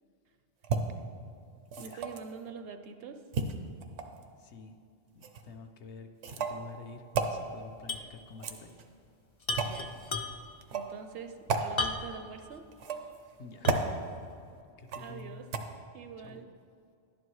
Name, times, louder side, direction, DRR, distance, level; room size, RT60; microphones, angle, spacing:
sound 1, 0.6-0.8 1.7-2.3 3.3-4.2 5.2-5.4 6.2-6.6 7.1-7.3 8.3-8.9 9.6-9.8 10.6-10.9 11.5-11.7 12.7-13.2 13.7-13.9 14.9-15.2 15.5-15.6, right 5 dB, 80° right, 1.1 m, -32 dB
voice 1, 1.8-3.2 9.6-9.9 10.7-12.6 15.0-15.5 15.9-16.5, right 6 dB, 65° right, 8 dB, 0.7 m, -44 dB
voice 2, 4.4-4.8 5.1-8.8 13.4-13.7 14.8-15.4 16.2-16.4, left 3 dB, 75° left, 5 dB, 1.0 m, -48 dB
sound 2, 7.9-8.1 8.4-8.5 9.4-10.6 11.8-12.3 12.8-12.9 13.6-14.0, left 3 dB, 50° left, 0.3 m, -34 dB
11.5 x 10.0 x 3.1 m, 2.2 s
omnidirectional pair, 1.2 m